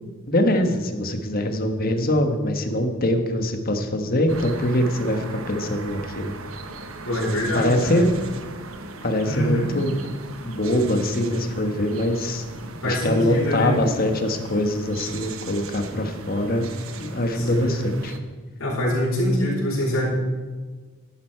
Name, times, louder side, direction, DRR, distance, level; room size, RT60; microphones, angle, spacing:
voice 1, 0.3-6.3 7.5-8.2 9.0-10.0 10.4-12.4 12.8-16.7 17.0-18.1, left 1 dB, 45° left, 6 dB, 1.3 m, -23 dB
sound 1, 4.3-18.2, right 3 dB, 85° right, 1.1 m, -38 dB
voice 2, 7.0-7.9 9.2-9.7 12.8-13.8 17.3-17.8 18.6-20.1, equal, 85° left, -7 dB, 5.1 m, -24 dB
13.5 x 11.5 x 4.5 m, 1.4 s
head